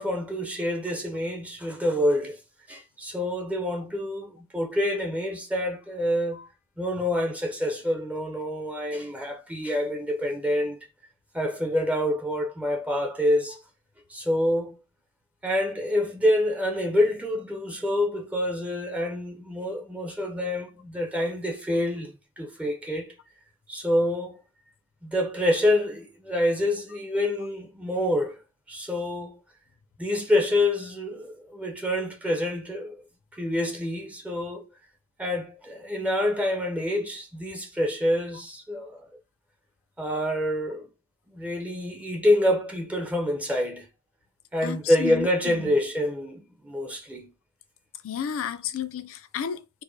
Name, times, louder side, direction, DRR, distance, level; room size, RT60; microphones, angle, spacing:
voice 1, 0.0-2.4 2.7-6.4 6.8-10.8 11.3-13.6 14.1-14.8 15.4-23.1 23.7-24.4 25.0-28.4 28.7-29.4 30.0-33.0 33.3-34.7 35.2-39.1 40.0-40.9 41.3-43.9 44.5-47.3, left 1 dB, 5° right, 0.5 m, -27 dB
voice 2, 44.6-45.7 48.0-49.8, left 8 dB, 65° left, 0.4 m, -33 dB
4.6 x 2.1 x 2.6 m
head